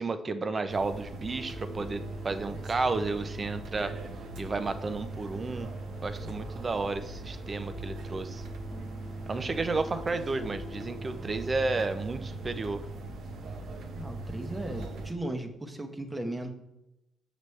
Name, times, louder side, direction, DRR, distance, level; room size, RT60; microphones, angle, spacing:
voice 1, 0.0-3.9 4.4-5.7 6.0-8.4 9.3-12.9, right 3 dB, 35° right, 10 dB, 0.7 m, -32 dB
sound 1, 0.7-15.1, right 2 dB, 70° right, 0.8 m, -40 dB
sound 2, 1.3-11.9, left 2 dB, 35° left, 1.2 m, -48 dB
voice 2, 14.0-16.5, right 1 dB, 15° right, 5 dB, 1.0 m, -36 dB
6.9 x 6.0 x 3.2 m, 0.90 s
cardioid pair, 90°, 0 cm